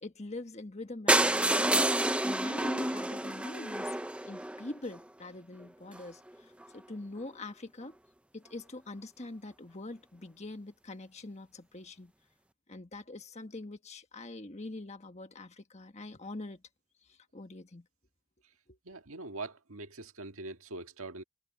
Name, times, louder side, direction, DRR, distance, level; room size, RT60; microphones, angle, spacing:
voice 1, 0.0-1.9 2.2-4.0 4.2-8.0 8.3-12.1 12.7-16.6 17.0-17.9 18.7-18.8, left 2 dB, 30° left, 1.5 m, -44 dB
sound 1, 1.1-5.0 5.6-5.7 5.9-6.1 6.3-6.4 6.6-6.7, right 1 dB, 5° right, 0.6 m, -28 dB
voice 2, 18.8-21.2, right 2 dB, 75° right, 1.8 m, -43 dB
head